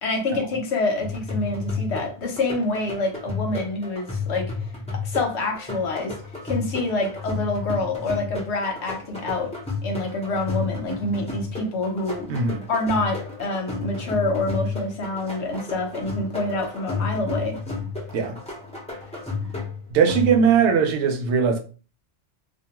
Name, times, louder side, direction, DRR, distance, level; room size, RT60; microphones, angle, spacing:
voice 1, 0.0-4.5 4.9-6.1 6.4-9.5 9.8-12.3 12.7-17.6, left 2 dB, 75° left, 1.0 m, -26 dB
sound 1, 1.0-20.7, left 4 dB, 5° left, 0.6 m, -32 dB
voice 2, 12.3-12.6 18.1-18.4 19.9-21.6, right 6 dB, 80° right, 0.9 m, -20 dB
2.3 x 2.2 x 2.9 m
omnidirectional pair, 1.2 m